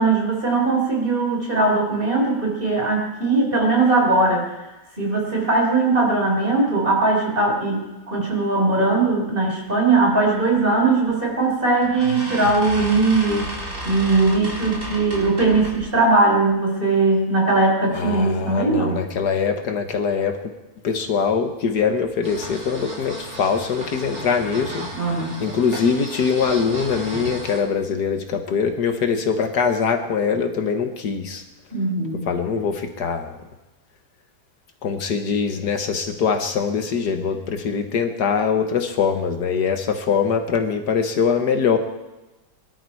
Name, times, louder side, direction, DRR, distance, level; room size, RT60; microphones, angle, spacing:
voice 1, 0.0-4.4 5.0-13.5 13.8-19.0 24.9-25.4 31.7-32.2, right 3 dB, 30° right, -1 dB, 4.6 m, -20 dB
sound 1, 11.1-11.3 11.8-15.9, right 1 dB, 50° right, 4.4 m, -32 dB
voice 2, 17.9-20.5 20.8-31.4 32.3-33.4 34.8-41.8, left 6 dB, 70° left, 6 dB, 1.8 m, -23 dB
sound 2, 22.2-27.6, right 1 dB, 65° right, 3.8 m, -35 dB
22.5 x 12.5 x 4.6 m, 1.1 s
omnidirectional pair, 1.8 m